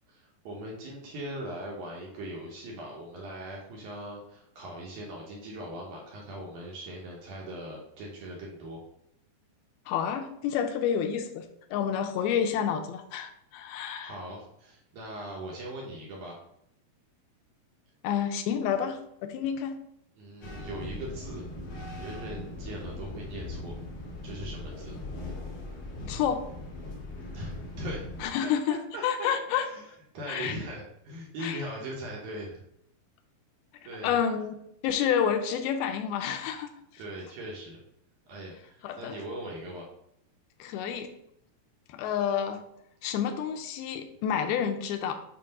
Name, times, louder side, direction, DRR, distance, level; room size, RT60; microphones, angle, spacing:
voice 1, 0.1-8.8 14.0-16.4 20.2-21.4 22.0-23.8 24.2-24.9 27.3-28.1 28.4-32.6 33.8-34.3 37.0-37.8 38.3-39.9, right 1 dB, 70° right, -2 dB, 2.0 m, -40 dB
voice 2, 9.9-14.1 18.0-19.8 26.1-26.5 28.2-28.8 29.0-29.7 30.3-30.5 31.4-31.6 34.0-34.5 34.8-36.7 38.8-39.1 40.6-41.1 41.9-42.6 43.0-45.1, left 8 dB, 85° left, 6 dB, 2.5 m, -29 dB
sound 1, 20.4-28.3, left 2 dB, 55° left, 2.0 m, -40 dB
7.4 x 2.6 x 5.2 m, 0.76 s
omnidirectional pair, 4.4 m